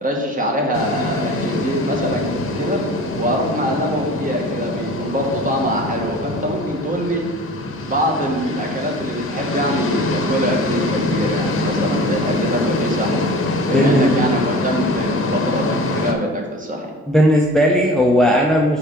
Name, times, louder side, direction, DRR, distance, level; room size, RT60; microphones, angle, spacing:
voice 1, 0.0-2.3 2.6-2.8 3.2-7.3 7.8-13.3 13.7-16.9, equal, 25° right, 0 dB, 1.4 m, -23 dB
sound 1, 0.7-16.1, left 2 dB, 45° left, 0.9 m, -24 dB
voice 2, 13.7-14.2 17.1-18.8, equal, ahead, -1 dB, 0.6 m, -16 dB
5.5 x 4.8 x 4.4 m, 1.4 s
cardioid pair, 90°, 30 cm